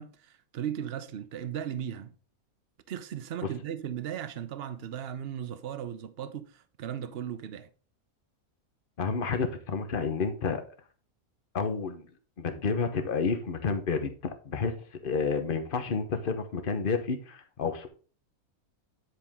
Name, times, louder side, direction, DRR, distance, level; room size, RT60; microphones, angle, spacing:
voice 1, 0.0-2.2 2.9-7.7, right 9 dB, 55° right, 0.8 m, -37 dB
voice 2, 9.0-10.6 11.5-12.0 12.4-14.1 14.4-14.7 15.0-17.9, left 5 dB, 40° left, 1.1 m, -30 dB
9.7 x 5.0 x 3.6 m
omnidirectional pair, 1.6 m